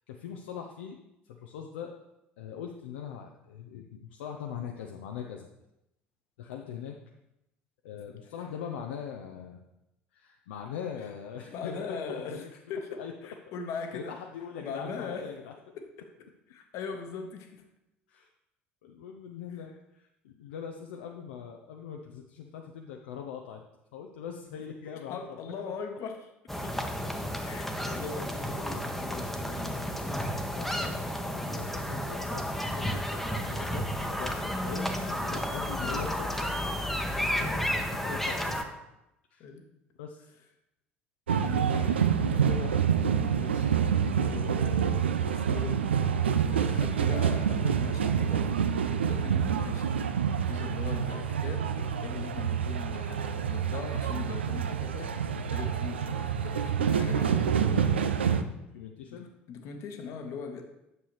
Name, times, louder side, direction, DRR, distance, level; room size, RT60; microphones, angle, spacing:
voice 1, 0.1-1.0 1.2-1.9 2.4-5.5 6.4-7.0 7.8-9.6 10.1-12.6 13.0-13.1 13.9-15.5 18.1-18.3 18.8-23.6 23.9-25.2 28.6-28.9 30.5-31.0 31.3-36.8 37.2-38.6 39.3-39.4 40.0-40.3 57.2-59.3, left 7 dB, 65° left, 2 dB, 0.6 m, -41 dB
voice 2, 11.5-14.2 14.6-15.3 15.8-16.1 16.5-17.6 19.5-19.7 25.1-26.3 26.6-27.0 27.4-29.8 30.2-30.5 35.8-36.2 39.4-39.7 41.4-43.8 44.2-46.1 46.5-49.9 50.2-57.7 59.1-60.6, left 5 dB, 50° left, 5 dB, 1.2 m, -41 dB
sound 1, 26.5-38.6, equal, 5° left, 1.0 m, -32 dB
sound 2, 41.3-58.4, right 7 dB, 75° right, 0.4 m, -27 dB
9.4 x 6.9 x 3.1 m, 0.89 s
figure-of-eight pair, 60°, 6 cm